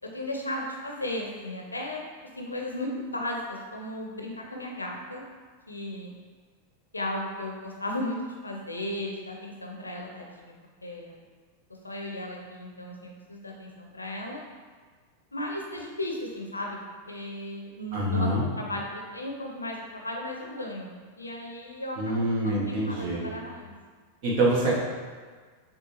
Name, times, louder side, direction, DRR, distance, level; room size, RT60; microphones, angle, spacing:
voice 1, 0.1-2.0 2.4-5.2 5.7-6.1 6.9-10.5 10.8-11.2 11.8-14.4 15.3-16.8 17.1-23.7, left 1 dB, 80° left, 0 dB, 0.6 m, -35 dB
voice 2, 17.9-18.4 22.0-23.3 24.2-24.8, right 1 dB, 50° right, -4 dB, 1.1 m, -25 dB
6.4 x 2.4 x 3.0 m, 1.5 s
figure-of-eight pair, 90°, 0 cm